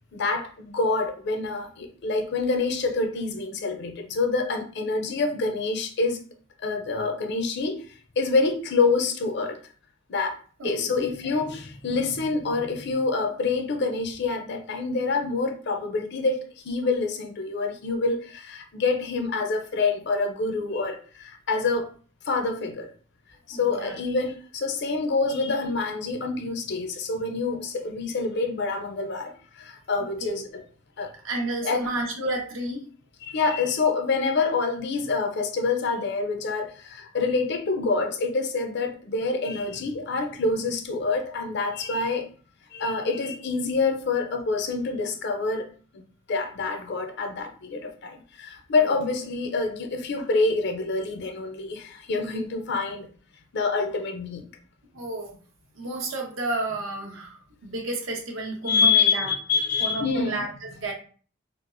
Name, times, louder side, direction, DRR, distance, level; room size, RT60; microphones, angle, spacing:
voice 1, 0.1-6.2 6.6-7.9 8.2-9.6 10.1-10.4 10.6-21.9 22.3-22.9 23.5-30.6 31.0-31.1 31.6-31.8 33.2-42.3 42.7-45.7 45.9-46.0 46.3-53.1 53.5-54.4 58.7-60.4, left 4 dB, 60° left, 0.6 m, -26 dB
voice 2, 10.6-11.1 23.5-24.0 30.2-30.3 31.2-32.8 48.8-48.9 54.9-55.4 55.7-57.3 57.6-59.3 59.8-60.9, right 2 dB, 85° right, 1.0 m, -31 dB
4.3 x 2.0 x 2.6 m
head